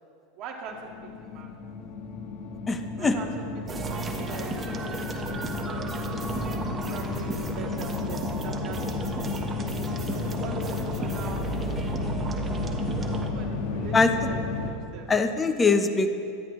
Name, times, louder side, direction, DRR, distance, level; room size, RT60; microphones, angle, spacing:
voice 1, 0.4-1.5 3.0-5.1 5.6-9.5 10.0-11.5 13.2-14.0 14.3-15.1, right 5 dB, 45° right, 1 dB, 1.9 m, -42 dB
sound 1, 0.7-14.7, left 4 dB, 65° left, 1.4 m, -33 dB
voice 2, 2.7-3.1 13.9-14.1 15.1-16.1, left 4 dB, 15° left, 7 dB, 1.0 m, -22 dB
sound 2, 3.7-13.3, right 4 dB, 20° right, 1.2 m, -34 dB
24.0 x 10.5 x 3.2 m, 2.8 s
supercardioid pair, 140°, 0 cm